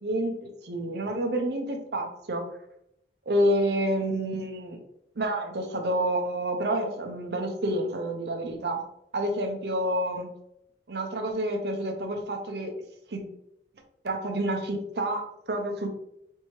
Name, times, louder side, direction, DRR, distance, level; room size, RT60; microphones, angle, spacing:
voice 1, 0.0-2.4 3.3-4.8 5.2-8.8 9.1-10.3 10.9-12.7 13.1-13.2 14.0-15.9, right 1 dB, 65° right, 4 dB, 0.7 m, -28 dB
4.4 x 2.7 x 3.0 m, 0.78 s
head